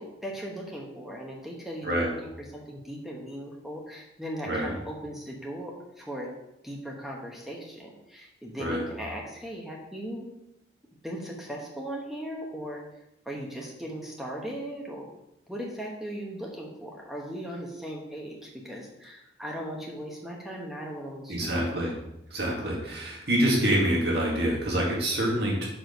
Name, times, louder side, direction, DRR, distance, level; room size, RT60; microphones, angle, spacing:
voice 1, 0.0-6.3 6.6-10.3 11.0-12.8 13.2-15.1 15.5-21.6, equal, ahead, -2 dB, 1.0 m, -38 dB
voice 2, 21.3-21.9 22.3-25.7, right 1 dB, 60° right, -3 dB, 2.1 m, -26 dB
6.2 x 5.0 x 5.1 m, 0.88 s
head